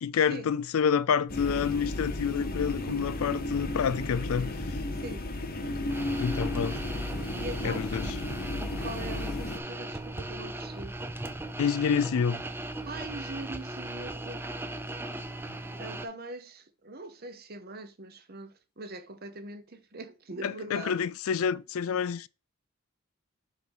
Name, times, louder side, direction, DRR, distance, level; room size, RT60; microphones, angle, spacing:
voice 1, 0.0-4.5 6.2-6.7 7.6-8.1 11.6-12.4 20.4-22.3, left 7 dB, 70° left, 0.4 m, -28 dB
sound 1, 1.3-9.6, left 2 dB, 40° left, 0.9 m, -33 dB
voice 2, 4.9-5.2 6.5-6.8 7.3-7.9 8.8-11.0 12.9-14.5 15.8-20.9, right 2 dB, 45° right, 0.9 m, -42 dB
sound 2, 5.9-16.1, right 1 dB, 10° right, 0.4 m, -38 dB
4.8 x 4.5 x 5.4 m
head